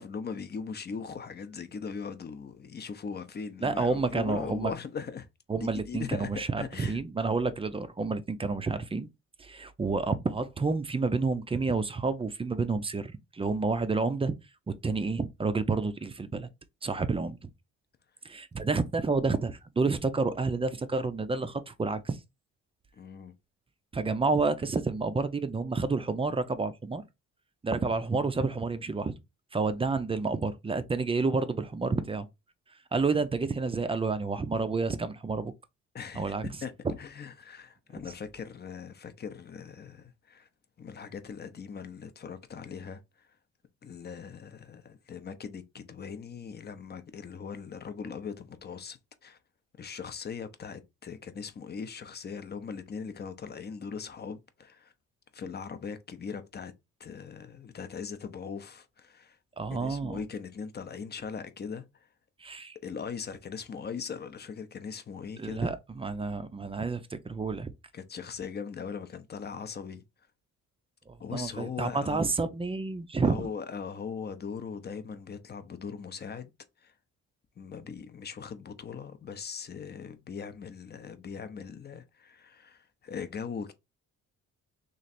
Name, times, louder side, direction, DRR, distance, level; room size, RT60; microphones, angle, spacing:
voice 1, 0.0-5.3 5.6-7.0 22.9-23.3 33.1-33.2 35.9-36.7 37.0-40.5 40.8-43.3 43.8-49.4 49.8-54.9 55.3-56.7 57.0-59.4 59.8-61.9 62.8-65.8 67.9-70.0 71.2-72.2 73.2-76.5 76.8-76.9 77.6-83.7, left 6 dB, 35° left, 0.6 m, -40 dB
voice 2, 3.6-4.7 5.5-9.1 9.4-14.3 14.7-16.5 16.8-17.5 18.2-22.2 23.9-27.0 27.6-29.1 29.5-32.3 32.9-35.5 36.1-36.5 59.6-60.2 62.4-62.8 65.4-67.7 71.1-73.5, right 4 dB, 20° right, 0.5 m, -29 dB
3.1 x 2.5 x 4.1 m
cardioid pair, 90°, 30 cm